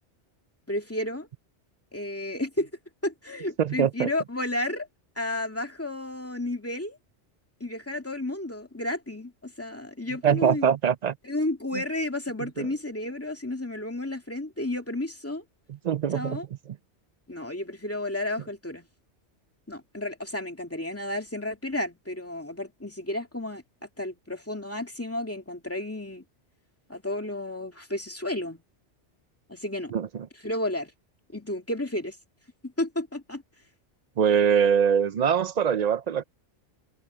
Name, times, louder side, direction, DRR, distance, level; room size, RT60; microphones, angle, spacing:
voice 1, 0.7-1.3 1.9-2.7 3.0-4.9 5.2-7.0 7.6-10.7 11.2-15.4 16.1-16.5 17.3-18.8 19.7-23.6 24.0-26.2 26.9-28.6 29.5-29.9 30.4-30.9 31.3-32.2 32.6-33.4, left 1 dB, 10° left, 2.2 m, -32 dB
voice 2, 3.6-4.1 10.2-11.2 11.7-11.8 12.6-12.7 15.8-16.4 29.9-30.3 34.2-36.2, right 8 dB, 55° right, 0.5 m, -23 dB
omnidirectional pair, 1.2 m